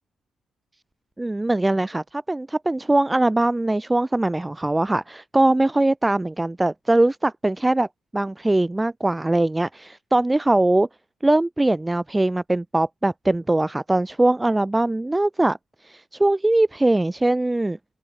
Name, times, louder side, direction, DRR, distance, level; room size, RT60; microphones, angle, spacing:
voice 1, 1.2-7.9 8.1-10.9 11.2-15.6 15.8-17.8, right 2 dB, 15° right, 1.0 m, -21 dB
open air
hypercardioid pair, 45°, 0 cm